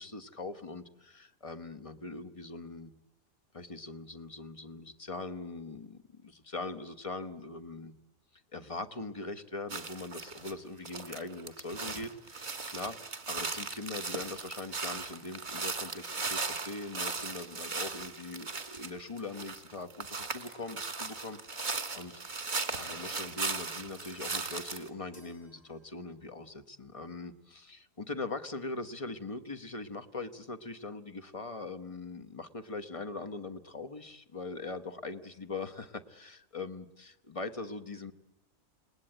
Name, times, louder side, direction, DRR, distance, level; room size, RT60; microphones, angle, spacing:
voice 1, 0.0-2.9 3.5-7.9 8.5-22.1 22.7-38.1, left 3 dB, 25° left, 9 dB, 1.2 m, -41 dB
sound 1, 9.7-10.5 10.8-24.9, right 4 dB, 35° right, 1.6 m, -38 dB
sound 2, 23.4-26.4, left 1 dB, 85° left, 4.8 m, -60 dB
29.0 x 19.5 x 8.9 m, 0.93 s
omnidirectional pair, 1.5 m